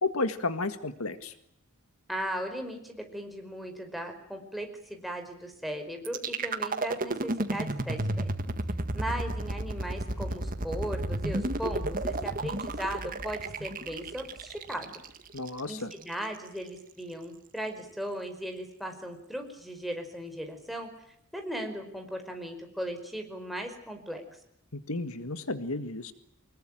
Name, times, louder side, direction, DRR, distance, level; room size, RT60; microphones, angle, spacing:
voice 1, 0.0-1.3 15.3-15.9 24.7-26.1, left 3 dB, 80° left, 11 dB, 1.8 m, -32 dB
voice 2, 2.1-8.3 8.9-14.9 15.7-20.9 21.3-24.2, equal, ahead, 3 dB, 5.1 m, -37 dB
sound 1, 6.0-16.0, right 2 dB, 40° right, 1.8 m, -32 dB
25.5 x 21.5 x 9.0 m, 0.74 s
head